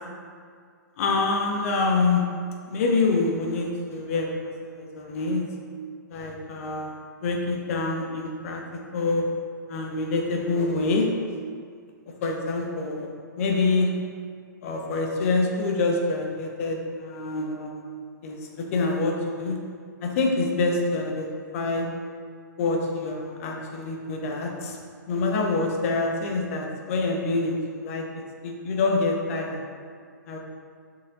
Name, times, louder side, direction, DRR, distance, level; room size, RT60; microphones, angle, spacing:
voice 1, 1.0-2.2 2.7-5.5 6.1-6.9 7.2-9.2 9.7-11.1 12.2-13.1 13.4-14.0 14.6-17.8 18.2-19.6 20.0-21.9 22.6-24.8 25.1-28.1 28.4-29.6 30.3-30.4, left 3 dB, 45° left, 1 dB, 1.4 m, -26 dB
7.2 x 6.5 x 4.0 m, 2.1 s
figure-of-eight pair, 125°, 10 cm